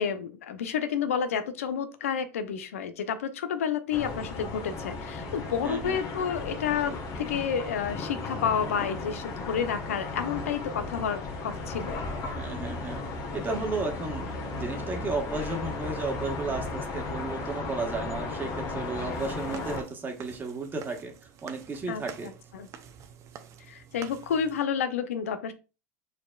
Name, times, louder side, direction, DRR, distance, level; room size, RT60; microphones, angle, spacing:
voice 1, 0.0-12.0 21.9-22.7 23.7-25.5, left 7 dB, 80° left, 11 dB, 0.6 m, -30 dB
sound 1, 3.9-19.8, left 3 dB, 50° left, 1.5 m, -35 dB
voice 2, 5.6-6.0 12.2-13.0 13.3-21.1 21.4-22.3, right 3 dB, 25° right, 3 dB, 1.4 m, -34 dB
sound 2, 19.1-24.6, right 8 dB, 45° right, 0.7 m, -47 dB
5.0 x 4.3 x 2.4 m, 0.31 s
hypercardioid pair, 85°, 7 cm